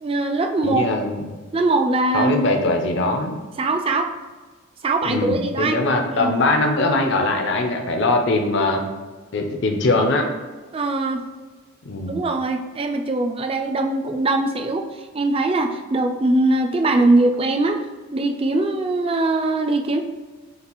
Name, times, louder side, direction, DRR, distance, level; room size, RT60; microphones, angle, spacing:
voice 1, 0.0-0.9 1.5-2.4 3.6-4.1 4.8-5.8 6.2-6.3 10.7-11.2 12.1-17.8 18.1-20.0, right 2 dB, 25° right, 5 dB, 0.3 m, -21 dB
voice 2, 0.6-1.2 2.1-3.4 5.0-8.8 9.3-10.3 11.9-12.2, left 2 dB, 55° left, 3 dB, 0.5 m, -21 dB
6.6 x 2.4 x 3.0 m, 1.3 s
head